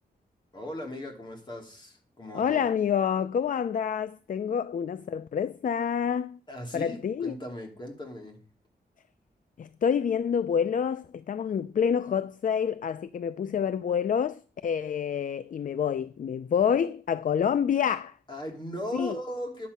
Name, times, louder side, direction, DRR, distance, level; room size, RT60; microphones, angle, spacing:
voice 1, 0.5-2.6 4.5-4.6 6.5-8.4 18.3-19.7, equal, 25° left, 3.1 m, -38 dB
voice 2, 2.3-6.4 6.7-7.3 9.6-18.1 18.9-19.1, left 7 dB, 50° left, 0.5 m, -27 dB
10.5 x 7.5 x 5.5 m
wide cardioid pair, 110°, 17 cm